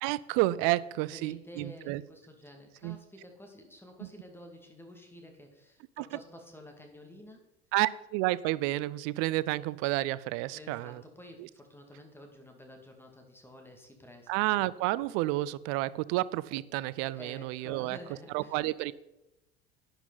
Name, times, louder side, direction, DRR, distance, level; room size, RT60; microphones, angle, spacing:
voice 1, 0.0-2.0 2.8-3.0 4.0-4.1 6.0-6.2 7.7-11.0 11.4-11.5 14.3-18.0 18.3-18.9, right 18 dB, 50° right, 20 dB, 0.5 m, -30 dB
voice 2, 1.1-7.5 10.5-14.3 17.2-18.5, equal, 5° left, 3 dB, 2.1 m, -50 dB
11.5 x 9.9 x 4.0 m, 0.93 s
figure-of-eight pair, 70°, 31 cm